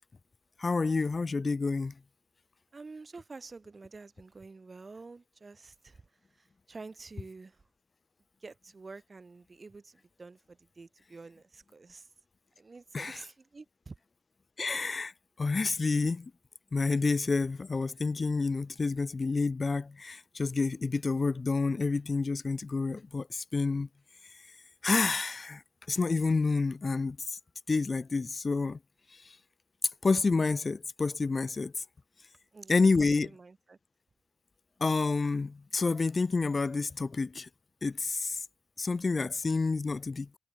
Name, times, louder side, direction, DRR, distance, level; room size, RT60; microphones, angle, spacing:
voice 1, 0.6-1.9 12.9-13.2 14.6-15.1 15.4-16.3 16.7-23.9 24.8-25.6 25.9-27.4 27.7-28.8 30.0-31.7 32.7-33.3 34.8-37.5 37.8-38.4 38.8-40.4, left 4 dB, 35° left, 0.4 m, -29 dB
voice 2, 2.7-6.0 6.4-7.6 8.4-12.1 12.6-13.9 32.5-33.8, right 3 dB, 35° right, 2.7 m, -49 dB
cardioid pair, 85°, 0 cm